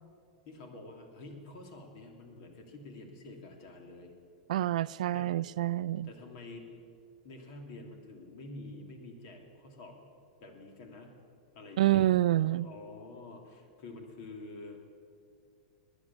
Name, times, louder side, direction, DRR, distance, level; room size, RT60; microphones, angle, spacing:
voice 1, 0.4-4.1 5.1-5.3 6.0-6.7 7.2-10.0 10.4-11.1 11.5-12.1 12.3-14.8, left 2 dB, 55° left, 3 dB, 2.9 m, -48 dB
voice 2, 4.5-6.1 11.8-12.7, right 14 dB, 75° right, 18 dB, 0.4 m, -27 dB
20.0 x 10.0 x 7.2 m, 2.4 s
supercardioid pair, 140°, 4 cm